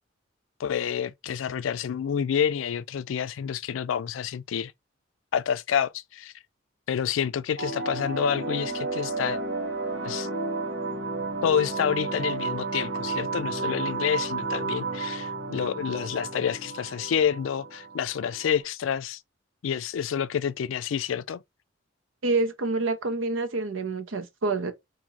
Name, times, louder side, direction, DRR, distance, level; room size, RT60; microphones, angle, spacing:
voice 1, 0.6-4.7 5.3-6.3 6.9-9.4 10.0-10.3 11.4-19.2 19.6-21.4, left 8 dB, 85° left, 0.4 m, -28 dB
sound 1, 7.6-18.6, right 3 dB, 60° right, 1.2 m, -32 dB
voice 2, 22.2-24.7, right 3 dB, 90° right, 0.7 m, -27 dB
2.9 x 2.7 x 3.8 m
head